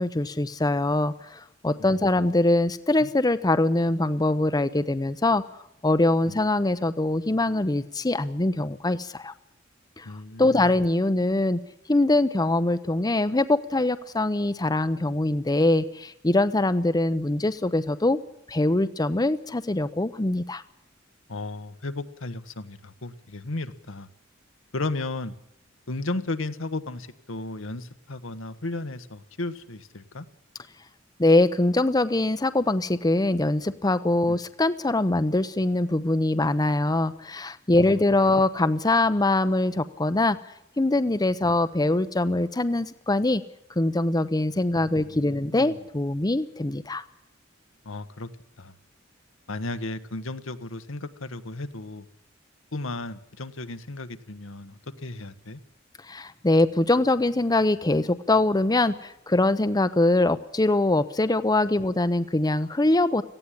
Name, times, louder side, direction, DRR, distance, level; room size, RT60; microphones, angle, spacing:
voice 1, 0.0-5.4 5.8-9.3 10.0-10.1 10.4-11.6 11.9-18.2 18.5-20.6 31.2-40.4 40.8-43.4 43.8-47.0 56.1-63.2, left 2 dB, 20° left, 11 dB, 0.7 m, -23 dB
voice 2, 10.0-10.7 21.3-24.1 24.7-25.3 25.9-30.2 34.3-34.4 38.3-38.4 44.8-45.7 47.8-48.3 48.6-48.7 49.5-52.0 52.7-55.6, left 2 dB, 80° left, 9 dB, 1.3 m, -34 dB
18.0 x 15.5 x 10.0 m, 0.79 s
head